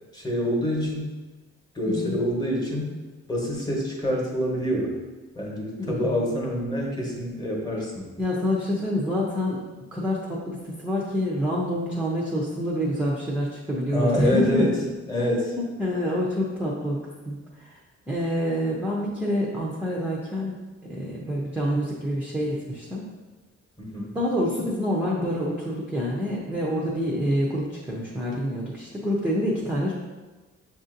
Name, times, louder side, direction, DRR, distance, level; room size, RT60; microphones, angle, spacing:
voice 1, 0.1-1.1 1.7-2.9 3.3-4.9 5.3-8.1 13.9-14.7 15.1-15.5 23.8-24.1, equal, 15° left, -2 dB, 1.0 m, -26 dB
voice 2, 1.9-2.2 5.8-6.3 8.2-9.6 9.9-14.9 15.2-15.3 15.6-17.8 18.1-20.6 20.9-23.1 24.1-29.9, equal, 5° right, -4 dB, 0.5 m, -27 dB
7.1 x 2.6 x 2.6 m, 1.2 s
cardioid pair, 135°, 29 cm